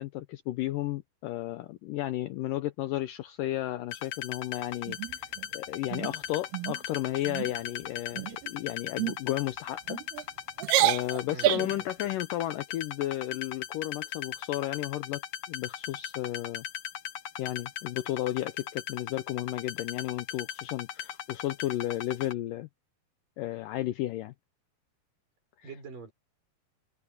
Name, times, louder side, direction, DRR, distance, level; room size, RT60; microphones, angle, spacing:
voice 1, 0.0-5.3 5.5-10.0 10.8-15.2 15.5-16.6 17.4-22.7 23.4-24.3 25.6-25.7, left 15 dB, 85° left, 2.0 m, -33 dB
sound 1, 3.9-22.3, left 10 dB, 60° left, 2.0 m, -38 dB
sound 2, 4.9-5.5 5.9-6.1 6.5-6.8 7.2-7.5 8.1-8.5 9.0-9.2 9.9-10.2 10.6-11.8, right 16 dB, 85° right, 2.8 m, -28 dB
voice 2, 11.3-11.9 25.6-26.1, right 4 dB, 55° right, 8.4 m, -45 dB
open air
omnidirectional pair, 4.5 m